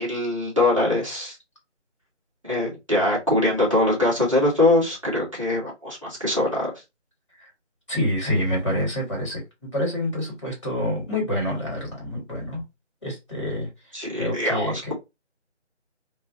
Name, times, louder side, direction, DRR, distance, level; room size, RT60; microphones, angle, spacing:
voice 1, 0.0-1.4 2.4-6.7 13.9-14.9, left 2 dB, 25° right, 1.2 m, -22 dB
voice 2, 7.9-9.4 9.7-12.6 13.0-14.9, left 1 dB, 25° left, 1.5 m, -27 dB
4.2 x 2.4 x 2.6 m
figure-of-eight pair, 170°, 36 cm